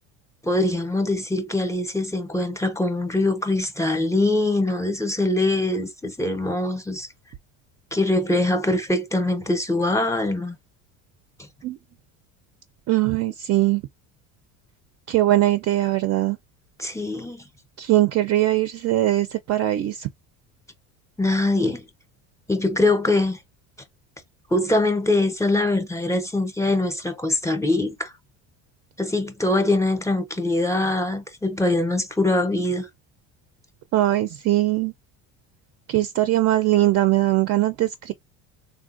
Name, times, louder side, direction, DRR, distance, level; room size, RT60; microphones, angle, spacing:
voice 1, 0.4-7.1 7.9-10.6 16.8-17.4 21.2-21.8 22.5-23.4 24.5-28.1 29.0-32.9, left 2 dB, 10° left, 0.7 m, -23 dB
voice 2, 12.9-13.8 15.1-16.4 17.8-20.1 33.9-34.9 35.9-38.1, right 15 dB, 50° right, 0.5 m, -21 dB
3.6 x 2.2 x 2.5 m
supercardioid pair, 105°, 34 cm